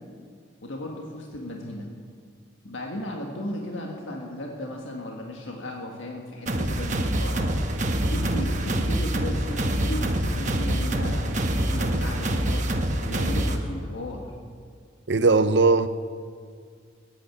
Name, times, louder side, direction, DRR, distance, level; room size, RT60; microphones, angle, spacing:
voice 1, 0.6-1.9 2.6-7.6 8.0-14.2, left 1 dB, 75° left, 1.7 m, -35 dB
sound 1, 6.5-13.6, right 1 dB, 35° right, 1.1 m, -25 dB
voice 2, 15.1-15.9, right 3 dB, 60° right, 0.6 m, -19 dB
15.5 x 8.9 x 8.5 m
head